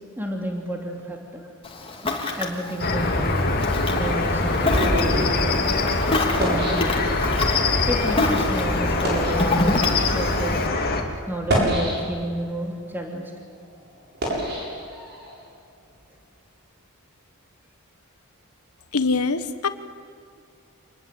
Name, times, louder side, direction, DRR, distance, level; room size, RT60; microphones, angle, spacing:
voice 1, 0.2-1.5 2.4-3.5 3.9-5.6 6.4-7.1 7.9-10.7 11.3-13.2, right 1 dB, 10° right, 1 dB, 2.9 m, -31 dB
Ocean, 1.6-10.7, left 2 dB, 25° left, 3.0 m, -28 dB
sound 1, 2.8-11.0, left 3 dB, 45° left, 2.9 m, -23 dB
sound 2, 3.8-7.5 8.2-8.4 8.9-9.4 10.2-10.4 11.3-12.4 12.9-15.4, equal, 50° right, 7.9 m, -27 dB
voice 2, 18.9-19.7, left 4 dB, 80° left, 10 dB, 1.4 m, -23 dB
27.0 x 21.0 x 8.4 m, 2.3 s
head